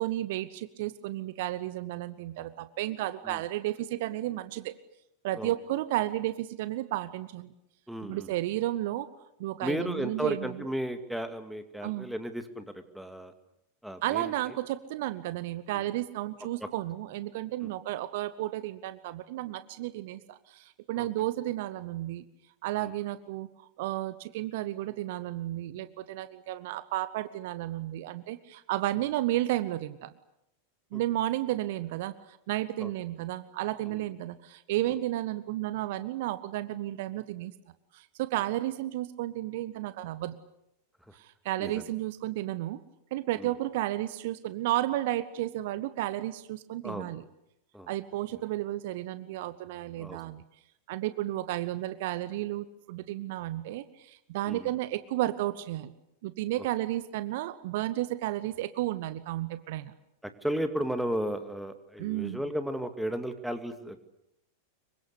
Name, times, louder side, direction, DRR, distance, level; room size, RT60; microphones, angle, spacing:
voice 1, 0.0-4.7 5.2-7.5 8.1-9.1 9.4-10.6 11.8-12.1 14.0-22.2 22.6-23.5 23.8-30.1 30.9-37.5 37.9-40.3 41.1-42.8 43.1-47.2 47.9-50.4 50.9-55.9 56.2-59.9 62.0-62.4, right 15 dB, 50° right, 14 dB, 1.1 m, -32 dB
voice 2, 7.9-8.3 9.6-13.3 13.8-14.3 15.7-15.9 16.6-16.7 17.6-17.7 21.0-21.1 22.8-22.9 30.9-31.0 32.8-32.9 33.8-34.1 34.9-35.0 41.1-41.2 41.6-41.9 43.4-43.5 46.8-47.1 47.7-47.9 50.0-50.2 54.4-54.8 56.6-56.7 60.2-64.0, equal, ahead, 8 dB, 2.4 m, -34 dB
26.5 x 24.0 x 8.4 m, 0.81 s
figure-of-eight pair, 90°, 0 cm